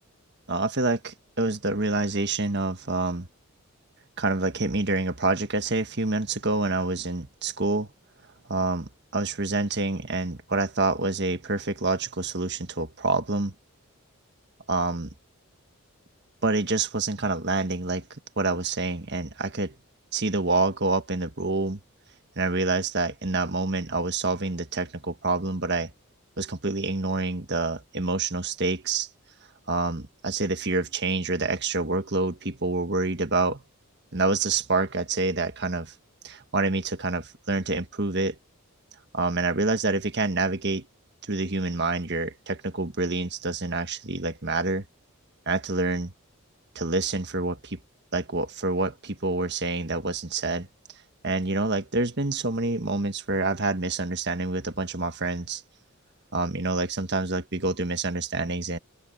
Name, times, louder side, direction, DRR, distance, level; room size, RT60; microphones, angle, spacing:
voice 1, 0.5-3.3 4.2-7.9 8.5-13.5 14.7-15.1 16.4-18.0 18.4-19.7 20.1-21.8 22.4-25.9 26.4-29.1 29.7-33.6 34.1-35.9 36.2-38.3 39.1-40.9 41.2-44.8 45.5-46.1 46.7-47.8 48.1-50.7 51.2-55.6 56.3-58.8, right 3 dB, 50° right, 1.6 m, -27 dB
open air
head